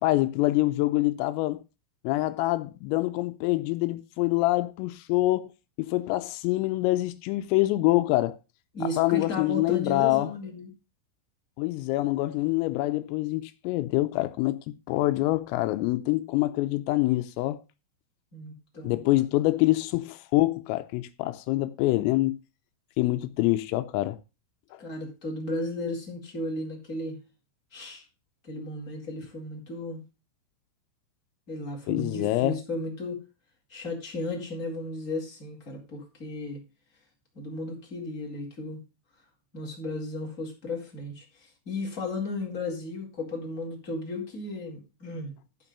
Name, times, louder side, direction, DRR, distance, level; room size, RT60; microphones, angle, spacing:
voice 1, 0.0-1.6 2.0-5.5 5.8-8.4 9.0-10.3 11.6-14.6 14.9-17.6 18.8-22.4 23.0-24.2 24.7-24.8 31.9-32.6, left 18 dB, 85° left, 3.4 m, -25 dB
voice 2, 8.7-10.7 18.3-19.2 24.8-27.2 27.7-28.0 28.4-30.0 31.5-33.2 33.7-36.6 37.3-38.8 39.5-45.3, left 2 dB, 15° left, 3.6 m, -35 dB
14.0 x 5.4 x 5.3 m
omnidirectional pair, 5.9 m